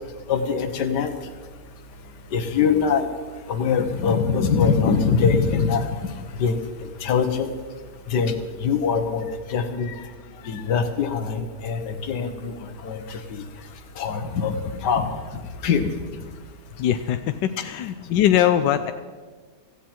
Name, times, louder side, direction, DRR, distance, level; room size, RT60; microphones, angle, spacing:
voice 1, 0.3-1.1 2.3-3.0 3.5-5.9 6.4-6.6 7.0-7.5 8.1-8.3 8.6-9.2 9.5-9.9 10.5-12.5 12.8-13.2 14.0-14.5 14.8-15.1 15.6-15.9, left 6 dB, 70° left, 8 dB, 1.7 m, -22 dB
voice 2, 9.9-10.7 16.8-18.9, left 11 dB, 90° left, 9 dB, 1.3 m, -23 dB
16.5 x 15.0 x 4.4 m, 1.4 s
omnidirectional pair, 1.9 m